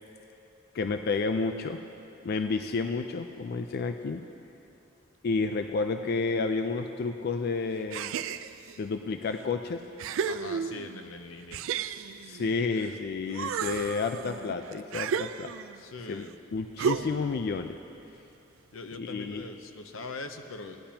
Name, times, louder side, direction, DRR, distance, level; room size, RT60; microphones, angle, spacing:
voice 1, 0.7-1.8 2.2-4.2 5.2-8.1 8.8-9.8 12.2-15.5 16.1-16.2 16.5-17.8 19.0-19.4, left 4 dB, 50° left, 7 dB, 0.4 m, -30 dB
sound 1, 7.9-8.8 9.4-9.5 10.0-11.0 11.5-12.9 13.3-15.8 16.8-17.4, right 7 dB, 75° right, 0.3 m, -33 dB
voice 2, 10.3-11.6 15.8-16.3 18.7-20.8, left 3 dB, 90° left, 6 dB, 0.7 m, -41 dB
17.5 x 10.0 x 2.8 m, 2.7 s
head